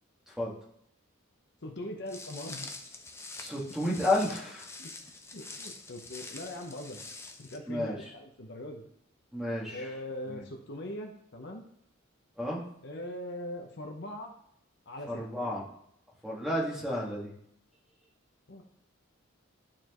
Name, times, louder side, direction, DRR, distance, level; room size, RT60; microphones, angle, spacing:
voice 1, 1.6-2.7 3.7-3.8 4.8-4.9 5.3-7.0 7.4-8.8 9.7-11.7 12.8-14.3 14.9-15.2 18.5-18.6, left 1 dB, 60° left, 3 dB, 0.9 m, -41 dB
Walk footsteps, 2.1-7.6, left 3 dB, 15° left, 0.6 m, -45 dB
voice 2, 3.4-4.7 7.7-8.0 9.3-9.9 10.3-10.4 12.4-12.6 15.1-15.6 16.2-17.3, left 1 dB, 5° right, -4 dB, 1.7 m, -31 dB
11.5 x 4.4 x 3.0 m, 0.72 s
head